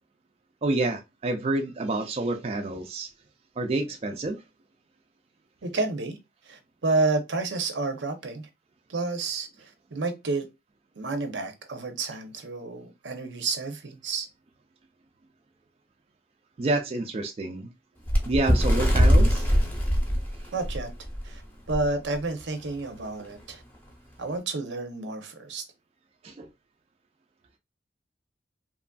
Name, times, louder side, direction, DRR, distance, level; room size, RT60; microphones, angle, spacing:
voice 1, 0.6-3.1 3.6-4.4 16.6-17.7 18.3-19.5 26.2-26.5, right 2 dB, 35° right, 0.3 m, -28 dB
voice 2, 5.6-6.2 6.4-8.5 8.9-10.4 11.0-14.3 20.5-20.9 21.2-21.4 21.7-23.6 24.2-25.6, right 3 dB, 80° right, 0.6 m, -30 dB
Bird, 18.1-21.2 21.7-21.9 22.2-22.4 23.2-23.3, equal, 10° left, 0.7 m, -21 dB
3.0 x 2.5 x 2.2 m
head